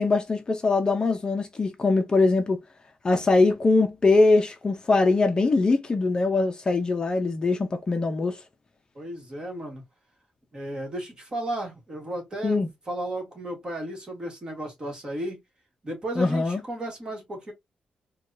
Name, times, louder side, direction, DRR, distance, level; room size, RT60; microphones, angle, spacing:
voice 1, 0.0-2.6 3.0-8.4 12.4-12.7 16.2-16.6, left 3 dB, 25° left, 0.5 m, -22 dB
voice 2, 8.9-9.8 10.5-15.4 15.8-17.5, right 1 dB, 25° right, 1.5 m, -34 dB
4.6 x 2.3 x 2.6 m
wide cardioid pair, 165°, 3 cm